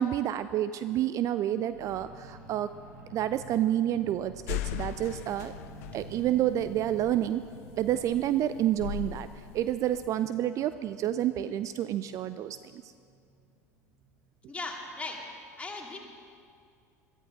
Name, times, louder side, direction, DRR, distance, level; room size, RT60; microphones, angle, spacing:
voice 1, 0.0-2.7 3.1-5.5 5.9-7.4 7.8-9.3 9.5-12.9, right 12 dB, 40° right, 13 dB, 0.4 m, -29 dB
sound 1, 1.7-14.3 14.8-14.9, right 1 dB, 80° right, 3.8 m, -50 dB
sound 2, 4.5-10.0, left 14 dB, 60° left, 0.5 m, -39 dB
voice 2, 14.5-15.2 15.6-16.0, left 3 dB, 15° left, 0 dB, 2.4 m, -37 dB
22.5 x 13.5 x 3.8 m, 2.3 s
figure-of-eight pair, 70°, 9 cm